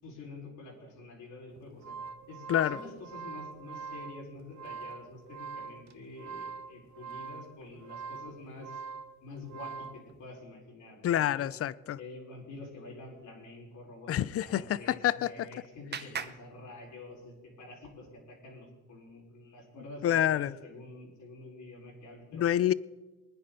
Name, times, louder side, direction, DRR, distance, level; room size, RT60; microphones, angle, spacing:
voice 1, 0.0-1.9 2.3-8.8 9.2-11.5 12.0-22.4, left 2 dB, 65° left, 5.0 m, -47 dB
sound 1, 1.6-10.0, right 5 dB, 60° right, 1.0 m, -43 dB
voice 2, 11.0-12.0 14.1-15.5 20.0-20.6 22.3-22.7, left 11 dB, 45° left, 0.5 m, -27 dB
Clapping, 14.8-17.4, right 7 dB, 30° right, 0.8 m, -44 dB
23.0 x 9.9 x 4.0 m
cardioid pair, 105°, 32 cm